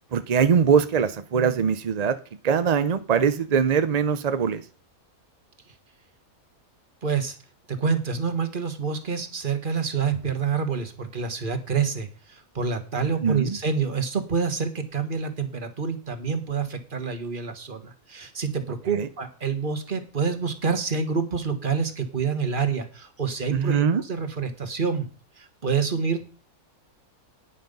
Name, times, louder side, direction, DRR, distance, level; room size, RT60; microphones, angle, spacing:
voice 1, 0.1-2.2 2.4-4.6 13.0-13.6 18.9-19.1 23.5-24.0, right 6 dB, 55° right, 0.4 m, -22 dB
voice 2, 7.0-7.4 7.7-25.1 25.4-26.2, right 5 dB, 35° right, 1.5 m, -27 dB
9.6 x 9.3 x 5.3 m
omnidirectional pair, 1.5 m